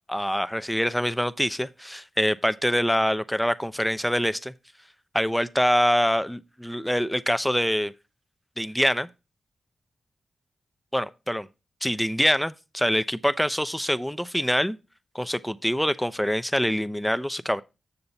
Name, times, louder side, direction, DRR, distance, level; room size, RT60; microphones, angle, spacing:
voice 1, 0.1-4.5 5.1-7.9 8.6-9.1 10.9-11.5 11.8-14.8 15.1-17.6, equal, 5° left, 0.6 m, -25 dB
7.2 x 6.8 x 4.0 m
supercardioid pair, 40°, 0 cm